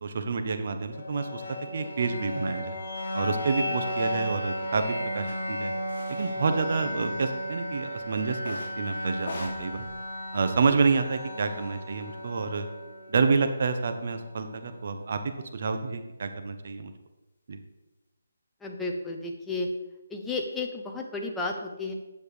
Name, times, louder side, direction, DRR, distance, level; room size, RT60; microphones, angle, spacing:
voice 1, 0.0-2.8 3.1-5.7 6.2-9.8 10.3-12.7 13.1-15.2 15.5-16.9 17.5-17.6, right 4 dB, 50° right, 7 dB, 1.2 m, -28 dB
sound 1, 0.9-14.9, equal, 65° left, 3.2 m, -35 dB
sound 2, 5.3-5.4 5.9-6.3 6.7-7.4 8.4-8.8 9.2-11.0, left 2 dB, 45° left, 3.6 m, -42 dB
voice 2, 18.6-19.7 20.1-21.9, left 3 dB, 5° left, 0 dB, 0.9 m, -33 dB
9.7 x 7.2 x 5.0 m, 1.0 s
hypercardioid pair, 165°, 0 cm